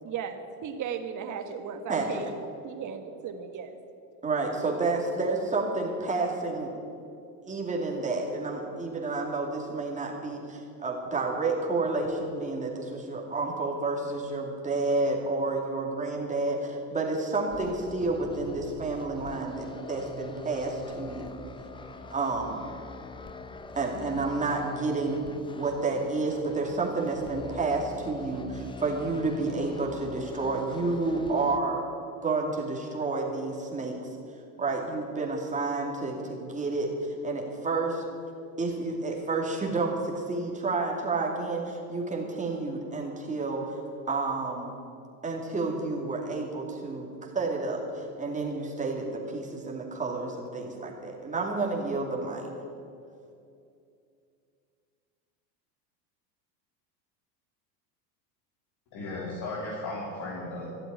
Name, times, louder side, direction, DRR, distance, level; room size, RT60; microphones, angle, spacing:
voice 1, 0.0-2.3 2.6-3.8, right 7 dB, 35° right, 8 dB, 1.4 m, -36 dB
voice 2, 1.9-2.3 4.2-6.7 7.4-21.3 22.1-22.6 23.7-25.2 25.6-31.8 32.2-34.0 34.6-38.0 38.6-43.8 44.1-44.7 45.2-47.1 47.3-52.5, right 3 dB, 15° right, -1 dB, 2.6 m, -30 dB
sound 1, 17.5-31.6, left 3 dB, 10° left, 0.5 m, -43 dB
voice 3, 58.9-60.7, left 2 dB, 50° left, -4 dB, 3.1 m, -35 dB
13.0 x 7.8 x 9.5 m, 2.6 s
supercardioid pair, 115°, 49 cm